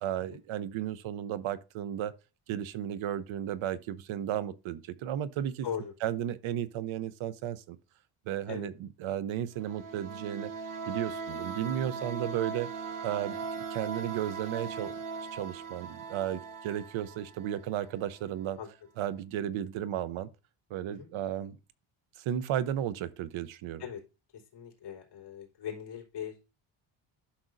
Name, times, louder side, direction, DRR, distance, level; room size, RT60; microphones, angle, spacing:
voice 1, 0.0-2.1 2.5-5.7 6.0-7.8 8.3-10.5 10.9-15.0 15.3-18.6 19.0-20.3 20.7-21.6 22.2-23.8, right 11 dB, 75° right, 0.8 m, -34 dB
voice 2, 5.6-5.9 8.5-8.7 18.6-18.7 20.9-21.1 23.8-24.0 24.3-26.5, left 8 dB, 55° left, 3.3 m, -40 dB
sound 1, 9.6-18.2, right 5 dB, 45° right, 0.8 m, -39 dB
11.5 x 6.0 x 2.6 m
cardioid pair, 170°, 49 cm